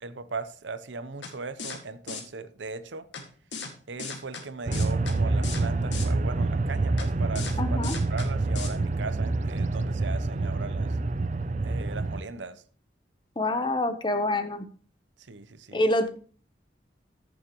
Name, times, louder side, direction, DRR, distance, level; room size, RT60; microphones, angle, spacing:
voice 1, 0.0-3.0 3.9-7.8 8.1-11.0 11.6-12.6 15.2-15.8, right 4 dB, 75° right, 0.8 m, -38 dB
sound 1, 1.2-1.3 1.6-1.8 2.1-2.2 3.1-3.2 3.5-3.7 4.0-4.4 4.7-5.1 5.4-5.6 5.9-6.1 7.0-7.1 7.4-7.5 7.8-8.3 8.6-8.7, left 5 dB, 75° left, 2.0 m, -36 dB
sound 2, 4.7-12.2, right 2 dB, 40° right, 0.5 m, -27 dB
voice 2, 7.6-8.0 13.4-14.7 15.7-16.1, left 1 dB, 25° left, 0.9 m, -26 dB
14.0 x 7.1 x 3.0 m
head